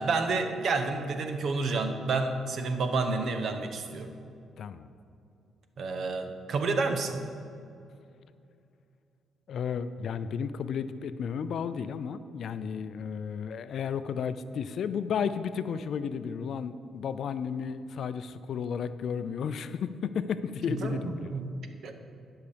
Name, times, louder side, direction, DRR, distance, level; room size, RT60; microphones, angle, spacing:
voice 1, 0.0-4.1 5.8-7.2 20.7-21.5 21.8-22.0, right 3 dB, 60° right, 7 dB, 0.9 m, -30 dB
voice 2, 4.6-4.9 9.5-21.4, left 7 dB, 65° left, 13 dB, 0.4 m, -33 dB
11.0 x 5.8 x 5.1 m, 2.5 s
cardioid pair, 90°, 0 cm